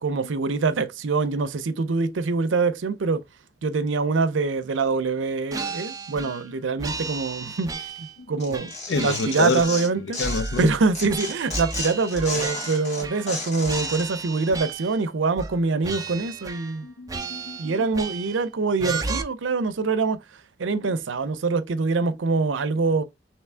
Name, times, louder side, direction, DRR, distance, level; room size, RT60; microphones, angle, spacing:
voice 1, 0.0-3.2 3.6-8.7 9.0-10.2 10.6-16.9 17.6-20.2 20.6-23.0, right 4 dB, 90° right, 0.5 m, -24 dB
sound 1, 5.5-6.5 6.8-8.2 8.5-9.9 10.2-13.4 13.6-15.0 15.4-15.6 15.8-16.8 17.1-18.5 18.8-19.2, right 4 dB, 20° right, 0.5 m, -34 dB
Tearing, 8.4-10.7 10.9-14.0, left 2 dB, 40° left, 1.7 m, -33 dB
voice 2, 8.9-9.6 10.2-10.7 16.8-17.7 20.8-20.9, left 4 dB, 70° left, 0.5 m, -27 dB
3.4 x 3.0 x 3.3 m
head